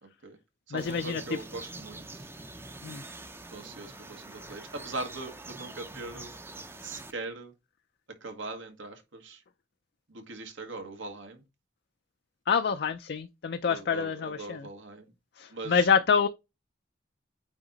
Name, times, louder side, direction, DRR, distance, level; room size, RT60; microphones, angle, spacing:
voice 1, 0.0-0.4 0.7-2.3 3.5-6.3 6.8-7.5 8.2-9.4 10.1-11.4 13.7-15.1 15.5-15.9, right 2 dB, 80° right, 1.6 m, -41 dB
voice 2, 0.7-1.2 2.8-3.0 12.5-14.6 15.4-16.3, left 6 dB, 55° left, 0.4 m, -27 dB
sound 1, 0.8-7.1, right 2 dB, 10° right, 0.5 m, -45 dB
8.7 x 2.9 x 3.9 m
head